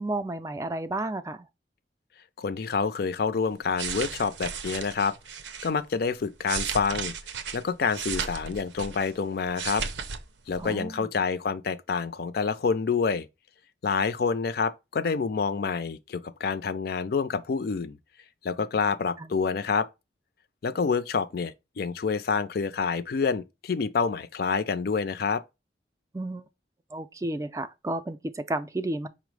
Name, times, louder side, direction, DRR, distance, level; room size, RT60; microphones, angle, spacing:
voice 1, 0.0-1.5 10.6-11.1 19.2-19.3 26.1-26.4 26.9-29.1, right 2 dB, 20° right, 0.3 m, -32 dB
voice 2, 2.4-5.2 5.6-7.1 7.5-9.9 10.5-13.3 13.8-18.0 18.4-19.9 20.6-25.4, left 5 dB, 60° left, 0.4 m, -27 dB
sound 1, 3.5-5.7 6.2-9.2 9.4-10.2 10.5-10.7, right 6 dB, 90° right, 0.6 m, -34 dB
5.5 x 2.0 x 4.6 m
head